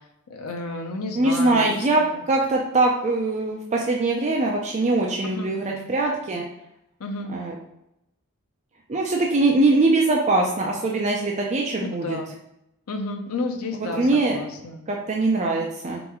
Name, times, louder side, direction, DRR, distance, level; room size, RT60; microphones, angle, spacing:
voice 1, 0.3-2.0 5.3-5.9 7.0-7.3 12.0-12.3 12.9-14.8, left 2 dB, 65° left, 3 dB, 0.5 m, -32 dB
voice 2, 1.2-6.4 7.3-7.6 8.9-12.2 13.9-14.4 14.9-16.0, right 2 dB, 30° right, 0 dB, 0.4 m, -22 dB
4.0 x 3.0 x 3.5 m, 0.85 s
head